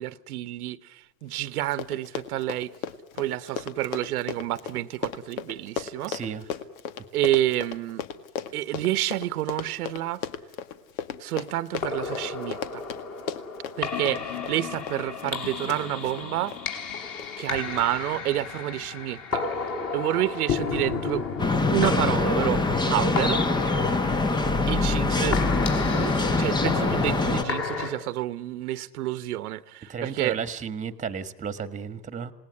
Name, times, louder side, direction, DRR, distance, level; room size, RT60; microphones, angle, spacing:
voice 1, 0.0-2.7 3.1-6.2 7.1-8.0 8.5-10.2 11.2-12.8 13.8-16.5 17.4-21.3 21.6-23.4 24.7-25.4 25.9-30.4, right 15 dB, 75° right, 1.2 m, -29 dB
Run, 1.3-1.4 1.6-16.6 17.2-17.5 17.8-17.9, left 8 dB, 60° left, 2.0 m, -36 dB
voice 2, 6.1-6.4 29.9-32.3, right 6 dB, 15° right, 1.6 m, -33 dB
sound 1, 11.7-27.9, left 5 dB, 30° left, 5.2 m, -32 dB
sound 2, 21.4-27.4, left 3 dB, 10° left, 1.0 m, -24 dB
27.5 x 19.5 x 9.7 m
supercardioid pair, 130°, 46 cm